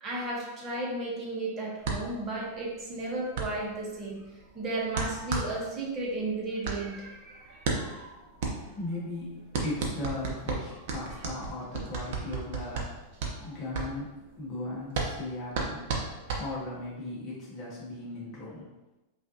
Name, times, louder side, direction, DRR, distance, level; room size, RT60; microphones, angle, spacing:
voice 1, 0.0-4.2 4.5-8.1 13.4-13.5, right 2 dB, 25° right, -3 dB, 1.0 m, -34 dB
sound 1, 1.8-16.9, right 4 dB, 55° right, 0.7 m, -34 dB
voice 2, 8.6-12.9 13.4-18.7, left 2 dB, 20° left, -7 dB, 1.0 m, -38 dB
5.2 x 2.5 x 2.7 m, 1.0 s
supercardioid pair, 165°, 0 cm